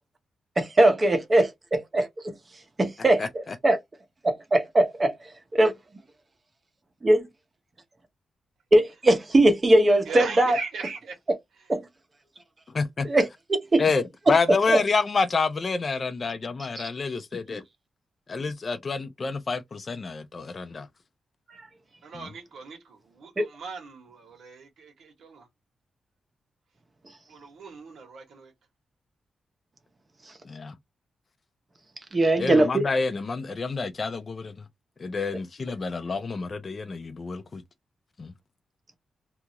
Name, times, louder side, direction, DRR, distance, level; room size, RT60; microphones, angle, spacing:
voice 1, 0.6-2.1 2.8-3.8 4.2-5.1 5.5-5.7 7.0-7.3 8.7-10.6 11.7-11.8 13.1-13.3 13.7-13.8 14.7-14.8 16.8-16.9 21.5-21.6 23.4-23.5 32.1-32.8, right 1 dB, 25° right, 0.7 m, -20 dB
voice 2, 3.2-3.5 12.7-13.1 13.8-17.6 18.3-20.9 22.1-22.3 30.5-30.7 32.4-34.5 35.0-37.6 38.2-38.3, left 4 dB, 35° left, 0.4 m, -28 dB
voice 3, 10.1-11.1 22.0-22.8 23.2-25.4 27.3-28.5, right 4 dB, 90° right, 1.3 m, -38 dB
2.8 x 2.4 x 2.8 m
wide cardioid pair, 150°, 0 cm